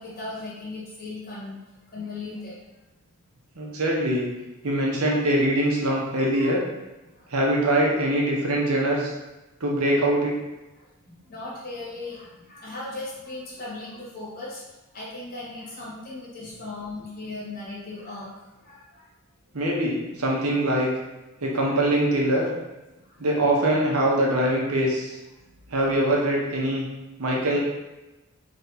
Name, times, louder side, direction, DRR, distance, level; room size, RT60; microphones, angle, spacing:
voice 1, 0.0-1.6 1.9-2.5 6.1-6.6 7.1-7.4 10.8-14.6 14.9-19.1 23.0-23.2 27.3-27.6, left 2 dB, 45° left, -7 dB, 1.5 m, -38 dB
voice 2, 3.6-4.3 4.6-6.6 7.3-9.1 9.6-10.4 19.5-20.9 21.4-22.5 23.2-25.1 25.7-26.9 27.2-27.6, right 1 dB, 85° right, -2 dB, 1.0 m, -23 dB
3.2 x 2.8 x 4.0 m, 1.0 s
head